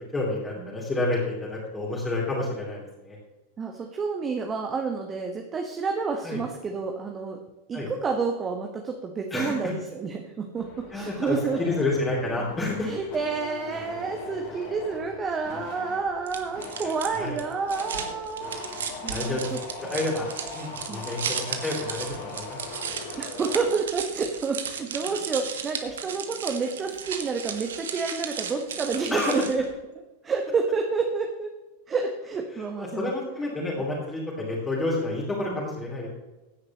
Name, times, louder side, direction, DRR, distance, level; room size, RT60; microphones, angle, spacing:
voice 1, 0.1-3.2 6.2-6.4 7.7-7.9 9.3-9.7 10.9-12.9 16.8-17.4 18.7-19.5 19.8-20.3 20.5-22.6 29.1-29.4 32.5-36.1, left 2 dB, 15° left, -5 dB, 3.0 m, -29 dB
voice 2, 3.6-7.4 7.7-11.6 12.8-18.7 19.0-19.6 20.9-21.0 23.2-29.6 30.2-31.5 31.9-33.1 33.8-33.9, right 4 dB, 20° right, 3 dB, 1.3 m, -29 dB
sound 1, 10.6-23.7, left 3 dB, 45° left, 3.3 m, -40 dB
sound 2, 16.3-29.7, right 7 dB, 65° right, 1.2 m, -35 dB
16.0 x 9.6 x 3.0 m, 1.1 s
figure-of-eight pair, 90°, 0 cm